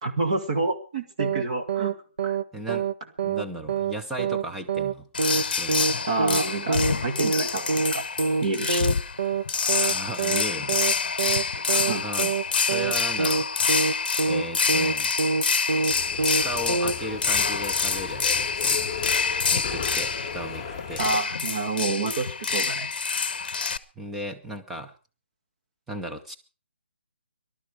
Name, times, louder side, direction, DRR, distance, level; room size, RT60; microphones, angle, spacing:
voice 1, 0.0-2.0 2.2-2.4 6.1-8.0 8.4-8.8 11.7-12.1 21.0-22.9, right 3 dB, 30° right, 5 dB, 1.9 m, -28 dB
sound 1, 1.2-1.4 1.7-1.9 2.2-2.4 2.7-2.9 3.2-3.4 3.7-3.9 4.2-4.4 4.7-4.9 5.2-5.4 5.7-5.9 6.2-6.4 6.7-6.9 7.2-7.4 7.7-7.9 8.2-8.4 8.7-8.9 9.2-9.4 9.7-9.9 10.2-10.4 10.7-10.9 11.2-11.4 11.7-11.9 12.2-12.4 12.7-12.9 13.2-13.4 13.7-13.9 14.2-14.4 14.7-14.9 15.2-15.4 15.7-16.4 16.7-16.9, right 4 dB, 60° right, 1.1 m, -25 dB
voice 2, 2.5-2.9 3.2-5.1 5.6-5.9 9.8-11.1 12.0-13.5 14.3-15.2 16.4-18.9 19.5-21.0 24.0-24.9 25.9-26.3, equal, 5° right, 3 dB, 0.6 m, -36 dB
sound 2, 5.1-23.8, left 5 dB, 50° left, 0.9 m, -27 dB
sound 3, 15.9-21.2, left 7 dB, 15° left, 3.9 m, -36 dB
19.0 x 12.5 x 4.9 m, 0.35 s
hypercardioid pair, 175°, 6 cm